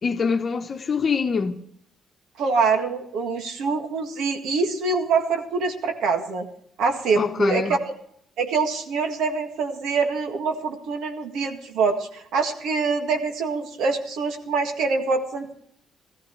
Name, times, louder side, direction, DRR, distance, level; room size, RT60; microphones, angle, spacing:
voice 1, 0.0-1.6 7.2-7.8, left 5 dB, 45° left, 1.0 m, -24 dB
voice 2, 2.4-6.5 6.8-7.9 8.4-15.5, right 4 dB, 80° right, 1.8 m, -25 dB
15.0 x 15.0 x 3.2 m
cardioid pair, 90°, 0 cm